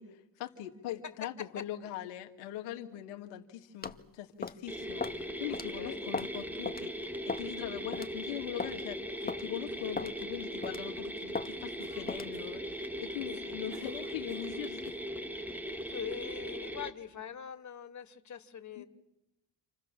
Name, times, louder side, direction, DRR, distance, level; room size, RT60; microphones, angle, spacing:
voice 1, 0.0-15.0 18.8-18.9, left 12 dB, 85° left, 4 dB, 2.3 m, -41 dB
voice 2, 1.2-1.6 5.7-6.0 13.4-13.6 15.9-18.9, left 8 dB, 45° left, 7 dB, 2.9 m, -43 dB
sound 1, 3.8-4.0 4.4-4.6 5.0-5.2 5.5-5.7 6.1-6.4 6.7-6.8 7.3-7.5 7.9-8.1 8.6-8.8 9.3-9.4 10.0-10.2 10.6-10.9 11.4-11.5 12.1-12.3, left 4 dB, 20° left, 1.9 m, -36 dB
sound 2, 4.7-16.9, equal, 5° right, 2.6 m, -39 dB
Cough, 11.8-12.7 13.3-15.1, right 4 dB, 75° right, 5.4 m, -56 dB
29.5 x 27.0 x 7.5 m, 0.92 s
supercardioid pair, 70°, 41 cm